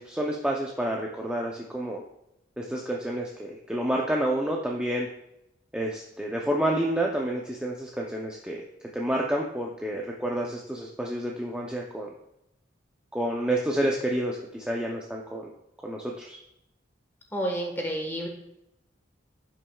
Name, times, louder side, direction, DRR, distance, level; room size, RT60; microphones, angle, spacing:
voice 1, 0.0-2.0 2.6-5.1 5.7-8.6 8.9-12.1 13.1-15.5 15.8-16.4, right 1 dB, 5° right, -2 dB, 0.6 m, -29 dB
voice 2, 17.3-18.3, right 1 dB, 10° left, 1 dB, 1.4 m, -30 dB
10.5 x 6.2 x 2.3 m, 0.84 s
head